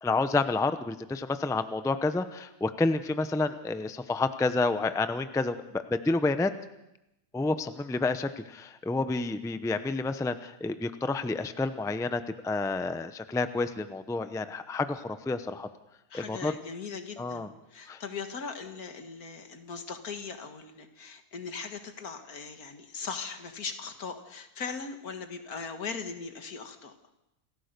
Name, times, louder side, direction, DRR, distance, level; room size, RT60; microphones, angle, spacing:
voice 1, 0.0-6.5 7.3-15.7 16.1-16.5 17.2-17.5 17.9-18.0, left 3 dB, 5° left, 10 dB, 0.5 m, -29 dB
voice 2, 16.1-26.9, left 5 dB, 80° left, 7 dB, 2.1 m, -39 dB
28.0 x 15.0 x 6.8 m, 0.89 s
omnidirectional pair, 1.6 m